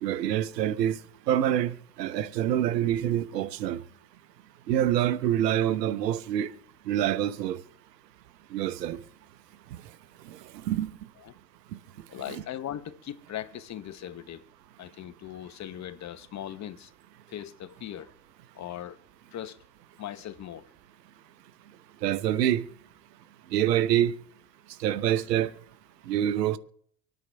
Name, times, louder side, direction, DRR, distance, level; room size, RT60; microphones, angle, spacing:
voice 1, 0.0-1.0 1.3-3.8 4.7-6.5 6.9-7.6 8.5-9.0 10.3-10.4 10.6-10.9 12.3-12.4 22.0-22.6 23.5-24.1 24.8-25.5 26.1-26.6, right 11 dB, 80° right, 1.0 m, -26 dB
voice 2, 12.1-14.5 14.8-16.9 17.3-18.1 18.5-19.0 19.3-19.6 20.0-20.7, left 11 dB, 35° left, 0.9 m, -39 dB
25.0 x 9.1 x 3.4 m
hypercardioid pair, 85°, 48 cm